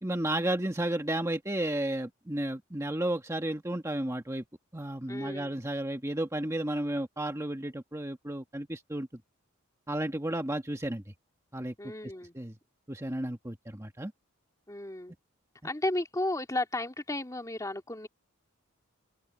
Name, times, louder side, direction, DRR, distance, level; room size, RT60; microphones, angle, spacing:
voice 1, 0.0-4.4 4.7-9.1 9.9-11.0 11.5-11.9 12.3-12.6 12.9-14.1, right 1 dB, 15° right, 1.4 m, -32 dB
voice 2, 5.1-5.6 11.8-12.4 14.7-15.1 15.6-18.1, left 1 dB, 15° left, 2.4 m, -33 dB
open air
head